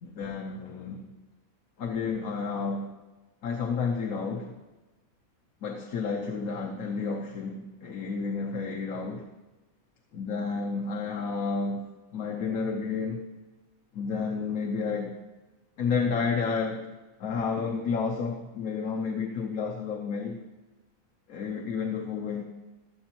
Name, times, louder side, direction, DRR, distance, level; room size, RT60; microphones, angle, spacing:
voice 1, 0.0-1.1 1.8-2.9 3.4-4.6 5.6-9.3 10.1-13.2 13.9-15.1 15.8-16.9 17.2-20.4 21.3-22.4, left 5 dB, 70° left, 1 dB, 1.4 m, -31 dB
22.0 x 7.8 x 2.9 m, 1.1 s
omnidirectional pair, 1.5 m